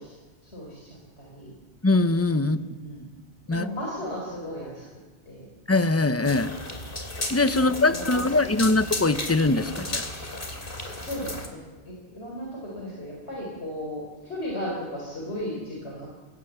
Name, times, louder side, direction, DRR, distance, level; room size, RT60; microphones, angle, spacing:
voice 1, 0.0-1.5 2.4-3.1 3.4-5.5 7.5-8.4 8.7-8.9 10.5-11.6 11.8-16.1, equal, 85° left, -2 dB, 4.7 m, -36 dB
voice 2, 1.8-2.6 3.5-3.7 5.7-6.6 7.3-10.1, left 2 dB, 15° left, 11 dB, 0.8 m, -22 dB
sound 1, 6.3-11.5, left 2 dB, 55° left, 2.9 m, -34 dB
27.5 x 17.0 x 8.0 m, 1.3 s
omnidirectional pair, 1.1 m